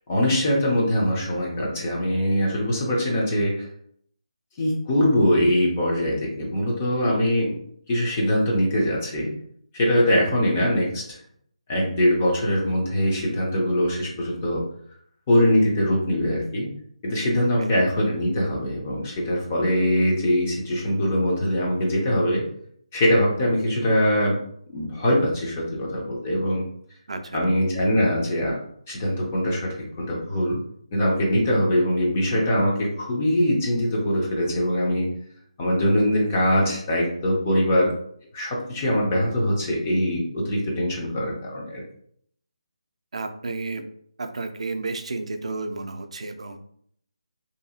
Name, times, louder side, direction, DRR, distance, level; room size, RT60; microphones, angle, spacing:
voice 1, 0.1-3.7 4.6-7.6 7.9-9.3 9.7-11.2 11.7-14.6 15.3-16.7 17.0-22.4 22.9-24.4 24.7-26.6 27.3-28.6 28.9-30.6 30.9-35.1 35.6-37.9 38.3-41.8, equal, 15° left, -2 dB, 0.5 m, -22 dB
voice 2, 27.1-27.4 43.1-43.8 44.2-46.6, right 3 dB, 65° right, 6 dB, 0.3 m, -32 dB
2.7 x 2.6 x 2.3 m, 0.65 s
hypercardioid pair, 175°, 4 cm